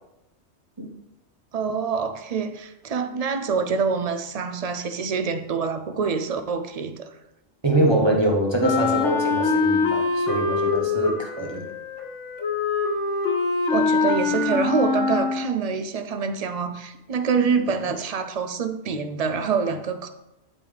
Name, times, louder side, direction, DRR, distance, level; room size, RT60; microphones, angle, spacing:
voice 1, 1.5-7.1 13.7-20.1, right 5 dB, 45° right, 0.5 m, -26 dB
voice 2, 7.6-11.7, right 1 dB, 25° right, 0.9 m, -23 dB
Wind instrument woodwind instrument, 8.6-15.6, left 4 dB, 80° left, 1.3 m, -24 dB
12.0 x 4.1 x 3.4 m
omnidirectional pair, 1.2 m